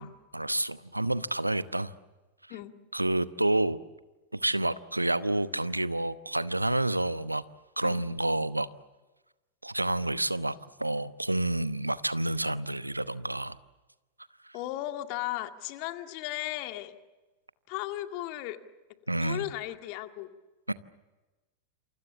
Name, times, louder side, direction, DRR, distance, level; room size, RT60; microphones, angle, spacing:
voice 1, 0.0-1.9 2.9-3.8 4.3-7.4 7.8-8.7 9.6-13.6 14.4-14.6 19.1-19.5 20.7-20.8, right 1 dB, 85° right, 15 dB, 1.0 m, -29 dB
voice 2, 14.5-16.9 17.7-18.6 19.2-20.3, left 15 dB, 45° left, 7 dB, 2.0 m, -36 dB
28.5 x 28.0 x 7.0 m, 1.2 s
figure-of-eight pair, 90°, 0 cm